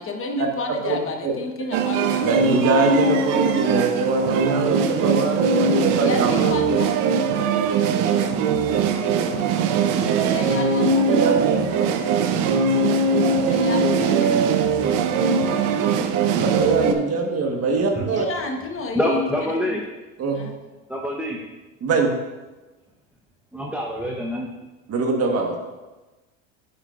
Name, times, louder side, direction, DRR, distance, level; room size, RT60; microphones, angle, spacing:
voice 1, 0.0-2.4 6.0-7.0 10.3-11.3 13.4-14.3 15.6-16.0 18.1-19.8 20.3-20.5, left 3 dB, 35° left, 3 dB, 1.2 m, -30 dB
voice 2, 0.8-1.3 2.2-6.4 11.1-11.7 15.2-15.3 15.9-18.2 20.2-20.4 21.8-22.1 24.9-25.5, right 4 dB, 40° right, 2 dB, 1.4 m, -23 dB
sound 1, 1.7-16.9, right 5 dB, 80° right, 0.8 m, -21 dB
sound 2, 5.3-6.4 6.7-11.4 11.7-14.2 14.5-16.2, left 2 dB, 85° left, 2.8 m, -41 dB
voice 3, 18.9-19.8 20.9-21.4 23.5-24.5, equal, 5° right, -2 dB, 0.8 m, -25 dB
9.3 x 7.5 x 2.5 m, 1.1 s
supercardioid pair, 105°, 36 cm